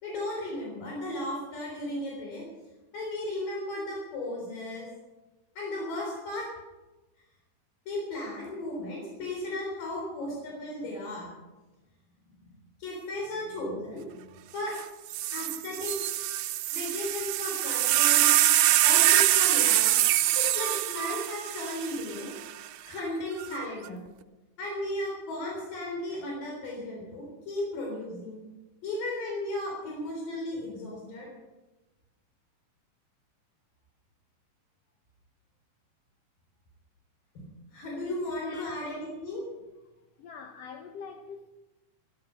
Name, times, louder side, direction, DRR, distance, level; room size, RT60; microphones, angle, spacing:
voice 1, 0.0-2.5 2.9-4.9 5.6-6.5 7.9-11.3 12.3-12.5 12.8-14.3 14.5-14.7 15.3-16.2 16.7-18.3 18.8-19.9 20.4-22.3 22.9-24.0 24.6-28.4 28.8-31.3 37.4-37.5 37.7-39.4, left 1 dB, 90° left, -2 dB, 5.5 m, -35 dB
sound 1, 14.7-14.8 15.1-22.5 23.4-23.9, right 14 dB, 85° right, 1.5 m, -24 dB
voice 2, 40.2-41.5, left 5 dB, 65° left, 6 dB, 1.7 m, -44 dB
14.0 x 13.5 x 6.9 m, 1.1 s
omnidirectional pair, 3.8 m